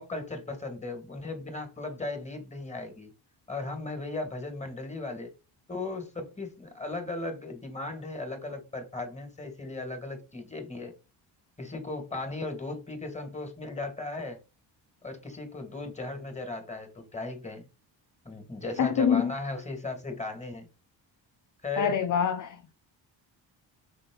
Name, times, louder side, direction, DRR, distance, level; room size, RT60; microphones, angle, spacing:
voice 1, 0.0-3.1 3.5-5.3 5.7-10.9 11.6-14.4 15.0-17.7 18.2-20.7 21.6-22.0, left 2 dB, 15° left, 2.3 m, -37 dB
voice 2, 18.8-19.3 21.8-22.7, left 7 dB, 45° left, 0.6 m, -25 dB
6.3 x 3.8 x 3.9 m
cardioid pair, 90°, 44 cm